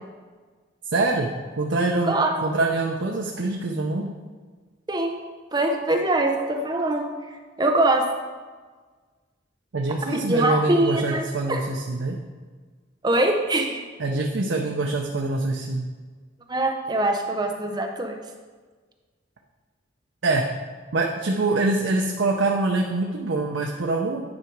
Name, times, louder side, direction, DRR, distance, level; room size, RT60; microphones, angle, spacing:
voice 1, 0.9-2.2 2.4-4.1 9.7-12.2 14.0-15.9 20.2-20.4 20.9-24.2, right 2 dB, 75° right, 1 dB, 0.7 m, -24 dB
voice 2, 4.9-5.2 5.5-7.1 7.6-8.1 10.1-11.2 11.5-11.6 13.0-13.8 16.5-18.2, right 1 dB, 20° right, 3 dB, 0.6 m, -23 dB
9.8 x 4.9 x 4.6 m, 1.5 s
head